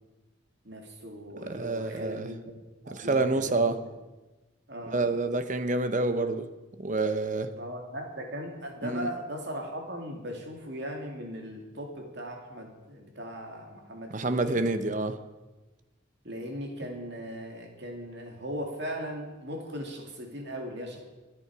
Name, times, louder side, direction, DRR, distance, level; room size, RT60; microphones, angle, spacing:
voice 1, 0.6-2.4 2.8-3.7 4.7-5.2 7.6-14.6 16.2-21.0, equal, 60° right, 2 dB, 2.5 m, -38 dB
voice 2, 1.5-2.3 2.9-3.8 4.9-6.5 6.8-7.5 8.8-9.1 14.1-15.2, right 2 dB, 40° right, 10 dB, 0.8 m, -28 dB
24.5 x 8.6 x 4.8 m, 1.2 s
head